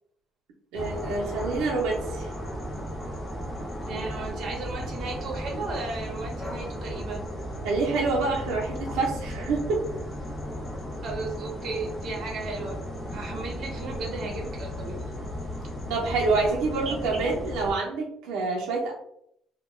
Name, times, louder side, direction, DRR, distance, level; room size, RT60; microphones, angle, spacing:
sound 1, 0.7-17.7, equal, 20° left, 0.7 m, -35 dB
voice 1, 0.7-2.3 7.6-9.8 15.9-18.9, right 3 dB, 85° right, -2 dB, 0.6 m, -27 dB
voice 2, 3.9-7.2 11.0-12.8 13.1-15.0 16.8-17.3, right 3 dB, 45° right, -1 dB, 0.8 m, -35 dB
2.3 x 2.2 x 3.1 m, 0.71 s
cardioid pair, 155°, 0 cm